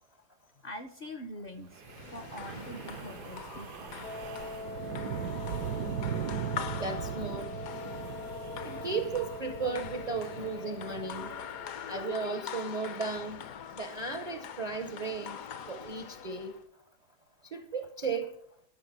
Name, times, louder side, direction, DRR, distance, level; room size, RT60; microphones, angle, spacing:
voice 1, 0.6-4.1 8.4-8.7, left 1 dB, 50° left, 0.7 m, -44 dB
Wind, 1.7-12.0, right 9 dB, 80° right, 1.2 m, -39 dB
sound 1, 1.8-16.6, left 8 dB, 65° left, 1.2 m, -43 dB
Wind instrument woodwind instrument, 4.0-11.9, left 4 dB, 90° left, 1.5 m, -43 dB
voice 2, 6.7-7.5 8.6-11.3 11.9-13.4 13.8-15.4 15.7-16.5 17.5-18.3, right 4 dB, 45° right, 0.5 m, -35 dB
12.0 x 5.6 x 6.0 m
omnidirectional pair, 1.7 m